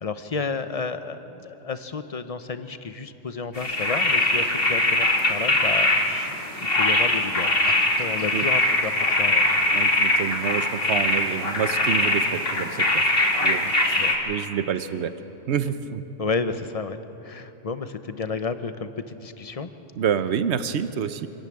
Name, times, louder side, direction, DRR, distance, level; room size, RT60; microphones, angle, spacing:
voice 1, 0.0-6.3 6.6-9.5 14.0-14.1 16.2-17.0 17.2-19.7, left 4 dB, 35° left, 10 dB, 0.8 m, -31 dB
sound 1, 3.6-14.2, left 1 dB, 50° left, 2.5 m, -22 dB
voice 2, 9.7-13.0 13.4-13.7 14.3-15.1 15.5-16.0 20.0-21.3, right 8 dB, 65° right, 11 dB, 1.1 m, -27 dB
26.0 x 13.0 x 8.7 m, 3.0 s
omnidirectional pair, 1.2 m